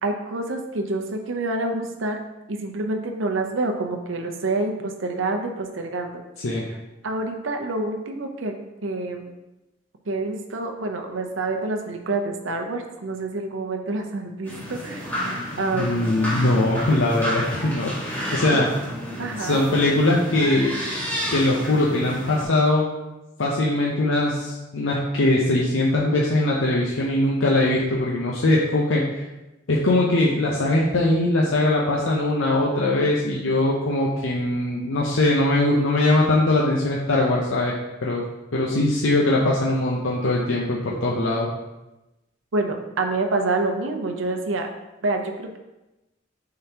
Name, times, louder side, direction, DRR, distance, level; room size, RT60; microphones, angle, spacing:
voice 1, 0.0-2.2 2.5-6.2 6.5-6.6 7.0-8.5 8.8-9.3 10.1-15.1 15.6-16.2 18.5-18.6 19.2-19.6 42.5-44.7 45.0-45.6, right 2 dB, 70° right, 4 dB, 0.7 m, -27 dB
sound 1, 14.4-22.4, equal, 10° left, 1.6 m, -31 dB
voice 2, 15.7-18.7 19.4-20.7 21.3-22.9 23.4-29.2 29.7-37.7 38.0-38.2 38.5-41.5, left 2 dB, 75° left, -3 dB, 0.7 m, -21 dB
8.7 x 3.9 x 2.8 m, 1.0 s
head